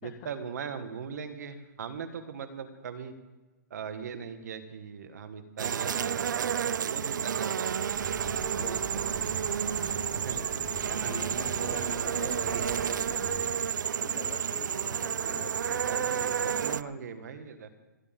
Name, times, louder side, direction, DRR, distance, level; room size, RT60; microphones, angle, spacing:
voice 1, 0.0-3.1 3.7-7.7 8.6-9.3 10.1-10.4 10.9-11.1 14.9-15.4 15.8-17.8, right 6 dB, 60° right, 9 dB, 1.8 m, -40 dB
sound 1, 5.6-16.8, right 8 dB, 85° right, 0.5 m, -30 dB
sound 2, 7.9-13.4, equal, 5° right, 4.2 m, -44 dB
voice 2, 8.6-9.1 11.1-13.3 14.0-17.1, left 16 dB, 25° left, 8 dB, 0.5 m, -47 dB
28.0 x 9.6 x 3.9 m, 1.2 s
hypercardioid pair, 165°, 10 cm